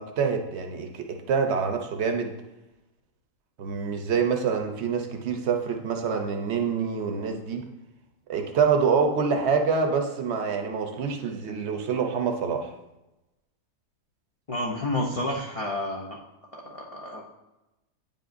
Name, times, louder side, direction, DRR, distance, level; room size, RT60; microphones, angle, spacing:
voice 1, 0.0-2.3 3.6-7.7 8.3-12.7, right 5 dB, 55° right, 4 dB, 0.8 m, -26 dB
voice 2, 14.5-16.2 16.5-17.3, left 1 dB, 50° left, -3 dB, 0.4 m, -30 dB
8.8 x 5.3 x 2.5 m, 0.97 s
omnidirectional pair, 1.6 m